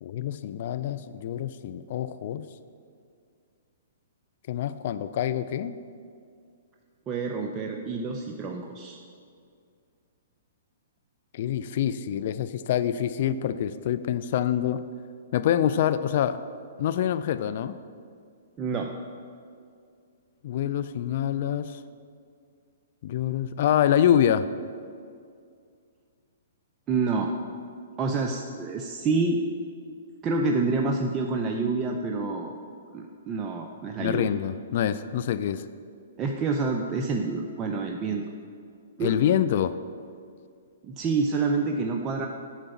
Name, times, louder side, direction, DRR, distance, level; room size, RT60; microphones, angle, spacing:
voice 1, 0.0-2.5 4.5-5.8 11.3-14.8 15.3-16.4 16.8-17.8 20.4-21.8 23.0-24.5 34.0-35.7 39.0-39.8, left 10 dB, 55° left, 13 dB, 0.3 m, -26 dB
voice 2, 7.1-9.0 18.6-18.9 26.9-27.3 28.0-29.4 30.2-32.6 32.9-34.3 36.2-38.2 39.0-39.2 40.8-42.3, right 3 dB, 25° right, 2 dB, 0.5 m, -27 dB
7.3 x 5.1 x 6.9 m, 2.3 s
hypercardioid pair, 135°, 0 cm